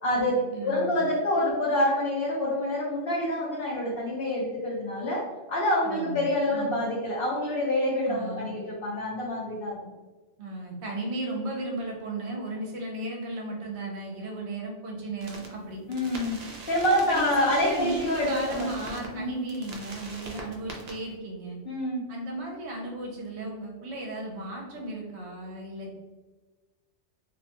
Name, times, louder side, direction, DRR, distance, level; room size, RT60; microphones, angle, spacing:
voice 1, 0.0-5.2 5.5-9.8 15.9-16.4 16.7-19.4 21.7-22.1, left 1 dB, 60° left, -3 dB, 0.7 m, -27 dB
voice 2, 0.5-1.0 5.8-6.7 8.0-8.5 10.4-15.8 17.1-21.6 22.1-25.9, right 1 dB, 65° right, -1 dB, 0.8 m, -35 dB
sound 1, 15.2-15.5 15.9-19.1 19.5-20.9, right 2 dB, 85° right, 0.3 m, -42 dB
2.5 x 2.1 x 2.8 m, 1.2 s
omnidirectional pair, 1.3 m